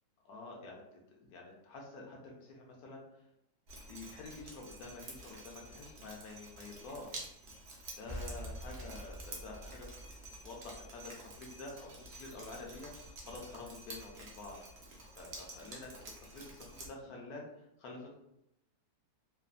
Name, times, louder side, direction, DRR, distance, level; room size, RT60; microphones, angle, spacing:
voice 1, 0.2-3.0 3.9-7.3 8.0-9.9 10.1-11.1 11.4-11.9 12.2-14.6 15.2-15.9 16.3-18.1, left 3 dB, 70° left, 0 dB, 1.1 m, -48 dB
Drip, 3.7-16.9, right 2 dB, 65° right, 0.6 m, -50 dB
sound 1, 8.1-11.5, equal, 50° left, 0.7 m, -47 dB
3.1 x 2.1 x 2.4 m, 0.82 s
omnidirectional pair, 1.8 m